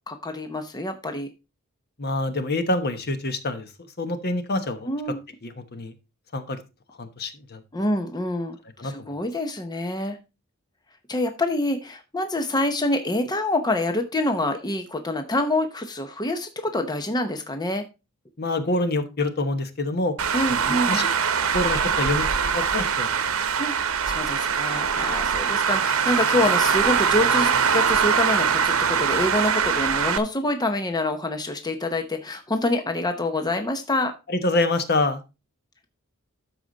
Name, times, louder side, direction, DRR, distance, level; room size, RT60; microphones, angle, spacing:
voice 1, 0.1-1.3 4.9-5.2 7.7-8.6 8.8-10.2 11.1-17.8 20.3-21.1 23.6-23.8 24.1-34.1, left 1 dB, 20° left, 6 dB, 0.8 m, -26 dB
voice 2, 2.0-4.9 5.4-5.9 6.3-6.6 7.0-7.6 8.8-9.1 18.4-20.2 20.5-21.1 21.5-22.3 22.5-23.3 34.3-35.2, left 2 dB, 50° left, 9 dB, 1.2 m, -26 dB
Traffic noise roadway noise, 20.2-30.2, right 6 dB, 75° right, 0.9 m, -22 dB
12.5 x 4.9 x 3.9 m, 0.28 s
head